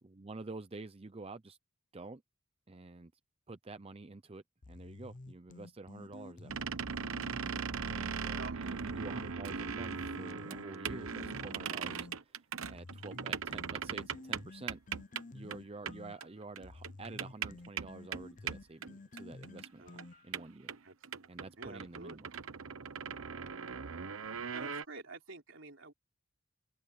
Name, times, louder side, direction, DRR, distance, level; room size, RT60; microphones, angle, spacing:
voice 1, 0.0-1.6 1.9-2.2 2.7-3.1 3.5-6.7 7.8-12.4 12.7-14.8 15.3-19.8 20.2-20.7 21.3-22.3, right 3 dB, 30° right, 0.6 m, -48 dB
sound 1, 4.6-8.2 8.6-12.2 12.6-20.4, left 2 dB, 40° left, 0.7 m, -51 dB
voice 2, 6.0-6.3 7.5-7.8 8.4-8.6 19.7-20.0 20.8-21.3 21.6-22.2 23.2-23.4 24.5-25.9, right 3 dB, 65° right, 4.0 m, -50 dB
sound 2, 6.5-15.2 15.5-15.6 15.9-16.0 16.2-16.3 16.6-19.7 20.0-20.1 20.3-24.8, right 6 dB, 90° right, 1.0 m, -39 dB
open air
head